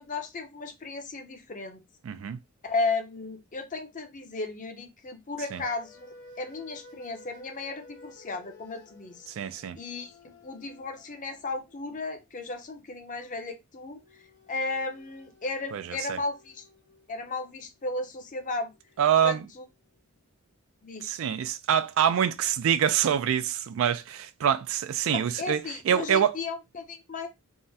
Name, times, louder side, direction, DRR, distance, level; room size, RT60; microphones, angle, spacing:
voice 1, 0.0-1.8 2.6-9.3 9.8-14.0 14.5-16.7 17.1-18.7 19.2-19.6 20.8-21.1 25.4-27.3, left 3 dB, 35° left, 0.6 m, -35 dB
voice 2, 2.0-2.4 5.5-5.6 9.3-9.8 15.7-16.2 19.0-19.4 21.0-26.4, right 9 dB, 60° right, 0.3 m, -26 dB
sound 1, 5.4-12.7 13.9-20.0, left 2 dB, 80° left, 1.1 m, -55 dB
3.6 x 2.0 x 2.7 m
head